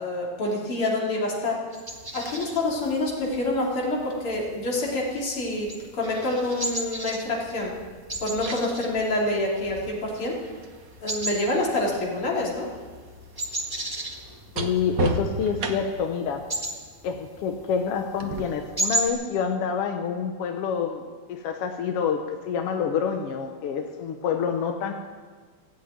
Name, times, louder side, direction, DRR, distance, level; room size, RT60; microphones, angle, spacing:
voice 1, 0.0-1.6 2.1-7.7 8.2-10.4 11.0-12.7, left 2 dB, 45° left, -3 dB, 3.9 m, -27 dB
sound 1, 1.7-19.1, right 1 dB, 20° right, 0.5 m, -36 dB
sound 2, 6.8-7.0 8.1-12.1 12.4-16.1 18.2-18.4, right 3 dB, 85° right, 0.7 m, -35 dB
voice 2, 14.5-16.5 17.0-24.9, left 7 dB, 65° left, 4 dB, 1.6 m, -27 dB
16.5 x 8.5 x 9.3 m, 1.5 s
omnidirectional pair, 3.4 m